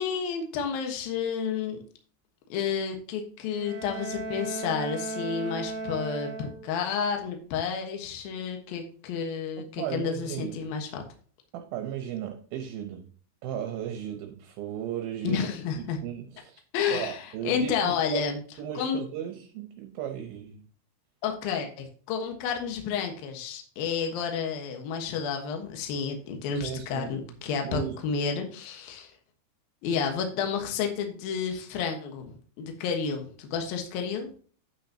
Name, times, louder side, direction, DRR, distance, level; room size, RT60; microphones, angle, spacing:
voice 1, 0.0-1.8 2.5-11.0 15.2-16.0 16.7-17.2 17.4-18.4 18.8-19.0 21.2-29.1 29.8-34.3, left 6 dB, 65° left, 3 dB, 2.9 m, -31 dB
Bowed string instrument, 3.5-6.9, right 3 dB, 55° right, 1.7 m, -36 dB
voice 2, 9.6-10.7 11.5-13.1 13.4-15.5 15.8-16.6 16.9-18.3 18.6-20.6 26.6-27.1 27.6-28.0, right 10 dB, 70° right, 4 dB, 2.6 m, -35 dB
9.0 x 8.7 x 2.8 m, 0.43 s
omnidirectional pair, 4.8 m